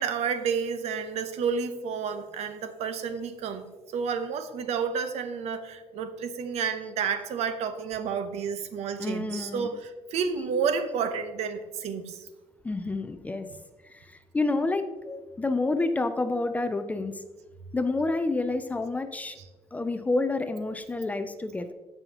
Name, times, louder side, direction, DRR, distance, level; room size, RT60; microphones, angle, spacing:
voice 1, 0.0-3.6 3.9-12.3 19.3-19.5, right 6 dB, 70° right, 10 dB, 0.8 m, -30 dB
voice 2, 9.0-9.7 12.6-13.5 13.8-17.2 17.7-19.4 19.7-21.7, left 2 dB, 15° left, 9 dB, 0.3 m, -29 dB
15.0 x 5.5 x 2.9 m, 1.2 s
cardioid pair, 180°, 12 cm